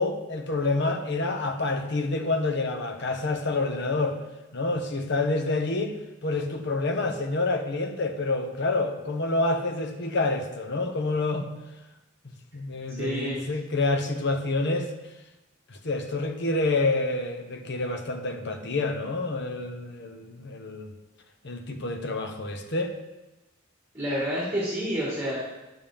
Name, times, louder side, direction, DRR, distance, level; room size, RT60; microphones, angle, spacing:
voice 1, 0.0-4.2 4.5-6.0 6.2-11.5 12.5-14.9 15.7-20.9 21.4-22.9, left 2 dB, 60° left, 5 dB, 1.0 m, -28 dB
voice 2, 12.9-13.5 23.9-25.4, equal, 15° right, -7 dB, 2.3 m, -29 dB
11.0 x 7.3 x 3.5 m, 1.0 s
head